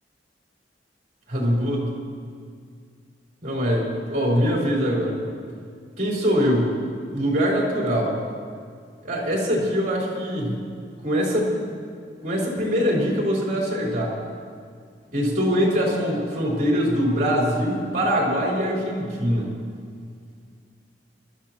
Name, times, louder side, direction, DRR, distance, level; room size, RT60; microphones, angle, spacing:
voice 1, 1.3-1.9 3.4-5.2 6.0-6.8 7.1-8.2 9.0-10.6 11.0-11.5 12.2-14.1 15.1-19.5, equal, 45° right, -4 dB, 4.1 m, -23 dB
23.0 x 13.0 x 3.0 m, 2.1 s
head